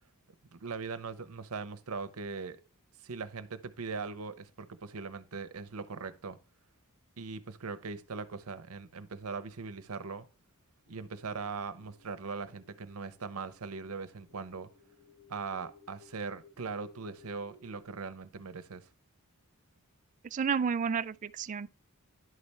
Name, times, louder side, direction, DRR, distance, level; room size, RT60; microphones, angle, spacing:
voice 1, 0.5-2.6 3.0-6.4 7.2-10.3 10.9-14.7 15.3-18.9, right 4 dB, 80° right, 0.8 m, -40 dB
sound 1, 10.9-17.8, left 4 dB, 60° left, 3.4 m, -60 dB
voice 2, 20.3-21.7, right 6 dB, 35° right, 0.3 m, -31 dB
11.0 x 4.2 x 3.4 m
head